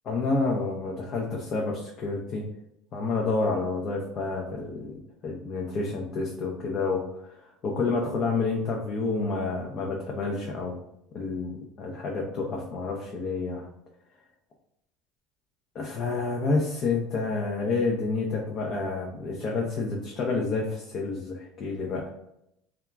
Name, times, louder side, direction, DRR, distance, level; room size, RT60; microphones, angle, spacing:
voice 1, 0.0-2.4 2.9-7.1 7.4-10.8 11.1-13.7 15.7-22.1, left 3 dB, 45° left, -1 dB, 0.5 m, -29 dB
2.8 x 2.3 x 2.3 m, 0.79 s
supercardioid pair, 95°, 0 cm